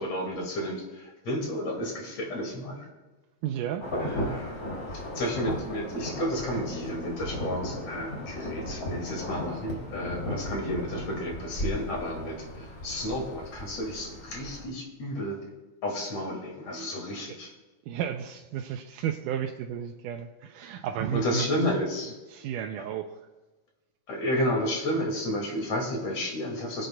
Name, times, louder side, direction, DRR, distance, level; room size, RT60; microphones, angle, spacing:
voice 1, 0.0-2.9 4.0-4.5 4.9-15.4 15.8-17.5 21.1-22.1 24.1-26.9, equal, 55° left, 0 dB, 3.2 m, -32 dB
voice 2, 3.4-4.1 17.3-17.4 17.9-21.5 22.3-23.3, right 9 dB, 90° right, 3 dB, 2.2 m, -33 dB
Insect / Thunder / Rain, 3.8-14.6, left 1 dB, 20° left, 2.4 m, -36 dB
22.5 x 8.0 x 2.2 m, 1.2 s
omnidirectional pair, 3.6 m